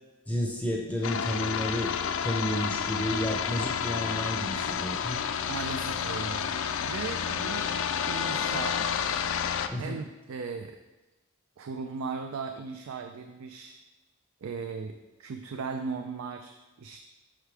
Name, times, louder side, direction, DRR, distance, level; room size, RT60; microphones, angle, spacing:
voice 1, 0.3-5.2 9.7-10.0, equal, 5° left, 0 dB, 0.6 m, -31 dB
sound 1, 1.0-9.7, left 7 dB, 65° left, 0.4 m, -30 dB
voice 2, 5.5-6.5 6.8-7.7 8.1-8.9 9.8-10.8 11.6-13.8 14.4-14.9 15.2-17.0, right 5 dB, 75° right, 6 dB, 0.4 m, -37 dB
5.5 x 5.1 x 4.7 m, 1.1 s
head